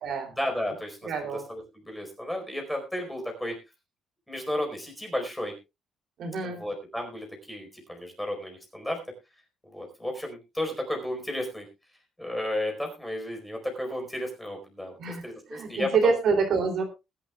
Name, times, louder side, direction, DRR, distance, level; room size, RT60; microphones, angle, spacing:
voice 1, 0.3-3.5 4.3-5.5 6.4-9.0 9.7-11.7 12.2-16.1, left 1 dB, 5° left, 2 dB, 4.5 m, -33 dB
voice 2, 1.1-1.4 6.2-6.6 15.0-15.2 15.5-16.8, right 5 dB, 55° right, 4 dB, 3.0 m, -26 dB
21.0 x 11.5 x 2.4 m, 0.25 s
cardioid pair, 150°, 0 cm